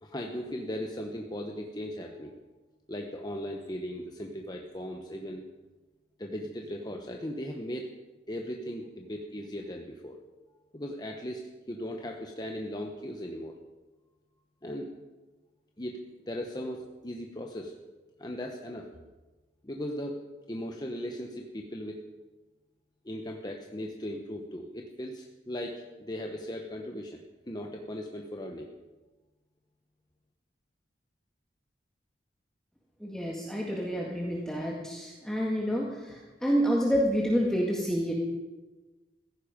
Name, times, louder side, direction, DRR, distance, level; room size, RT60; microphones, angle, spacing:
voice 1, 0.0-2.3 2.9-5.4 6.2-7.9 8.3-10.2 10.7-13.6 14.6-14.9 15.8-16.0 16.2-17.7 18.2-18.9 19.6-20.2 20.5-22.0 23.0-28.7, equal, 25° left, 2 dB, 1.1 m, -38 dB
voice 2, 33.0-38.1, equal, 5° left, -3 dB, 1.8 m, -28 dB
15.5 x 15.0 x 5.2 m, 1.2 s
head